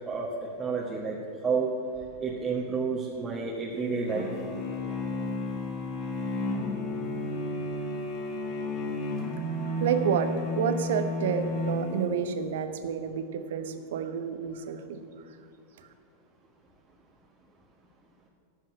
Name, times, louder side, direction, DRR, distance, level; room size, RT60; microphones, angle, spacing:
voice 1, 0.1-1.2 1.4-1.7 2.2-4.3, right 5 dB, 15° right, -2 dB, 1.3 m, -30 dB
sound 1, 4.1-12.4, left 2 dB, 40° left, 1.9 m, -32 dB
voice 2, 9.8-15.0 15.8-15.9, right 7 dB, 55° right, 9 dB, 1.0 m, -29 dB
11.0 x 7.6 x 9.5 m, 2.5 s
figure-of-eight pair, 90°, 0 cm